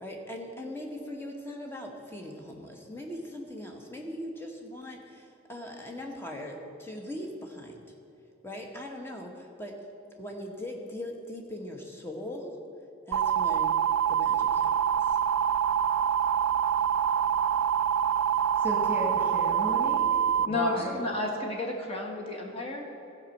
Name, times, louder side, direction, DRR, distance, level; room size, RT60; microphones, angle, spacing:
voice 1, 0.0-7.8 8.4-9.7 10.2-12.6 13.1-13.8 14.1-14.7 15.0-15.2, left 1 dB, 10° left, 1 dB, 1.1 m, -40 dB
sound 1, 13.1-20.5, right 8 dB, 75° right, 0.3 m, -25 dB
voice 2, 18.6-20.1 20.4-21.0, equal, 10° right, -2 dB, 2.0 m, -34 dB
voice 3, 20.4-22.8, left 2 dB, 25° left, -1 dB, 1.5 m, -31 dB
14.5 x 5.3 x 7.1 m, 2.8 s
head